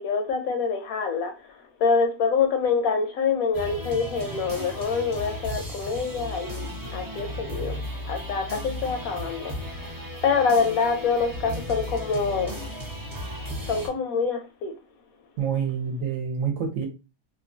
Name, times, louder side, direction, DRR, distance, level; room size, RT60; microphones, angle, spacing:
voice 1, 0.0-7.8 8.1-9.9 10.2-12.6 13.7-14.7, left 5 dB, 70° left, 0.9 m, -26 dB
sound 1, 3.5-13.9, equal, 25° right, 0.4 m, -35 dB
voice 2, 15.4-16.8, right 7 dB, 65° right, 0.9 m, -27 dB
3.1 x 2.2 x 2.5 m
omnidirectional pair, 1.7 m